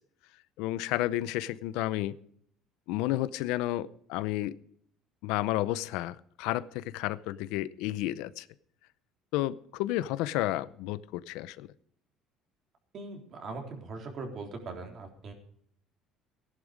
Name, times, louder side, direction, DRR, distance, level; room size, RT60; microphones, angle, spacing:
voice 1, 0.6-2.2 2.9-4.6 5.2-8.5 9.3-11.7, left 15 dB, 80° left, 0.6 m, -31 dB
voice 2, 12.9-15.3, right 3 dB, 40° right, 3.6 m, -40 dB
16.0 x 11.0 x 5.1 m
cardioid pair, 145°, 0 cm